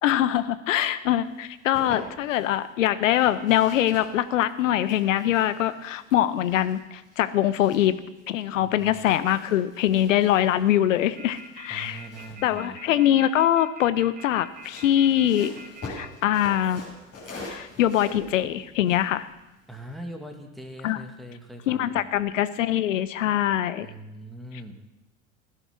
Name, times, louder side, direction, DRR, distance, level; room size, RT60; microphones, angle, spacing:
voice 1, 0.0-8.0 8.3-12.0 12.4-15.5 15.8-16.8 17.4-19.3 20.8-21.0 21.7-23.9, left 12 dB, 60° left, 14 dB, 1.0 m, -23 dB
sound 1, 1.3-2.5 3.0-8.4 8.7-13.4 14.4-19.9, left 2 dB, 35° left, 7.4 m, -44 dB
voice 2, 8.6-8.9 11.7-12.8 19.7-22.1 23.8-24.8, right 1 dB, ahead, 3 dB, 2.1 m, -41 dB
sound 2, 11.2-16.1, right 4 dB, 20° right, 2.7 m, -44 dB
16.0 x 12.0 x 6.0 m, 0.96 s
figure-of-eight pair, 75°, 42 cm